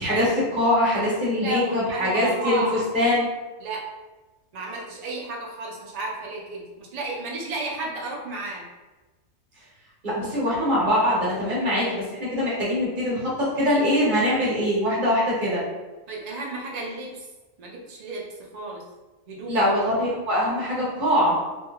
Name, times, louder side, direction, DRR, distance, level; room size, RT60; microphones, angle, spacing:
voice 1, 0.0-2.6 2.9-3.2 10.0-15.6 19.5-21.4, left 1 dB, 40° right, -6 dB, 1.1 m, -23 dB
voice 2, 1.3-2.8 3.6-3.8 4.5-8.7 16.1-17.3 17.6-18.8 19.3-19.6, right 2 dB, 90° right, -2 dB, 0.3 m, -33 dB
2.9 x 2.6 x 2.3 m, 1.2 s
omnidirectional pair, 1.4 m